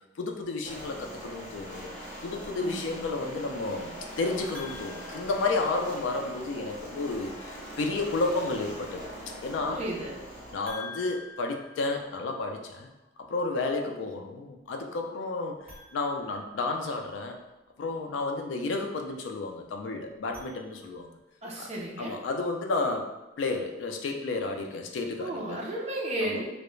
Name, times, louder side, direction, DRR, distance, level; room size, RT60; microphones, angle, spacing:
voice 1, 0.2-1.9 2.2-9.0 9.4-9.8 10.5-12.9 13.3-15.6 15.9-17.4 17.8-21.1 21.6-21.7 22.0-23.1 23.4-25.6 26.2-26.4, left 3 dB, 75° left, 4 dB, 0.3 m, -31 dB
sound 1, 0.6-10.5, right 1 dB, 40° left, 0.8 m, -42 dB
voice 2, 2.6-3.0 9.7-10.2 21.4-22.2 25.2-26.5, right 1 dB, 35° right, -2 dB, 0.5 m, -34 dB
sound 2, 4.5-6.2 10.6-12.7 15.6-17.2 20.1-21.3, left 4 dB, 10° right, 0.8 m, -48 dB
2.3 x 2.0 x 3.0 m, 1.0 s
head